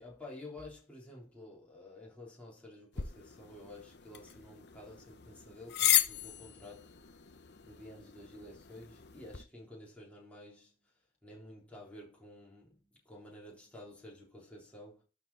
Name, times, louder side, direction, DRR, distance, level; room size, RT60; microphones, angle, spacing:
voice 1, 0.0-7.1 7.6-10.9 11.2-15.0, left 1 dB, 5° left, 3.9 m, -51 dB
sound 1, 2.9-9.4, left 11 dB, 65° left, 1.0 m, -35 dB
12.0 x 4.9 x 4.3 m
head